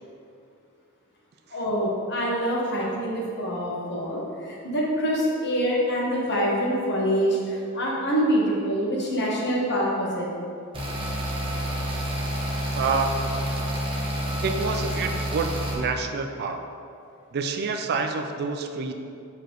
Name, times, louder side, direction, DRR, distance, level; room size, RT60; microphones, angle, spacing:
voice 1, 1.5-10.3, equal, 50° left, -4 dB, 1.2 m, -25 dB
sound 1, 10.7-15.7, equal, 25° right, 0.9 m, -29 dB
voice 2, 12.7-13.3 14.4-16.7 17.3-18.9, right 4 dB, 45° right, 6 dB, 0.4 m, -28 dB
6.9 x 4.8 x 3.0 m, 2.5 s
head